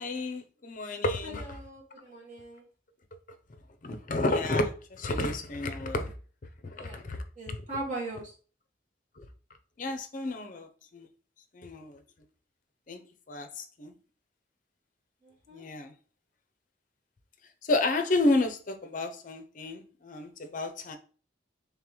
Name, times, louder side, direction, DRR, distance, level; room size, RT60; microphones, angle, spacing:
voice 1, 0.0-1.4 3.8-6.1 6.6-7.2 7.5-7.6 9.2-9.3 9.8-11.1 11.5-12.0 12.9-13.0 13.3-13.9 15.5-15.9 17.7-21.0, left 2 dB, 45° left, 0.5 m, -31 dB
voice 2, 1.2-2.7 5.1-5.2 6.7-7.0 7.4-8.3 15.2-15.7, right 2 dB, 45° right, 1.7 m, -40 dB
3.8 x 3.4 x 3.0 m
head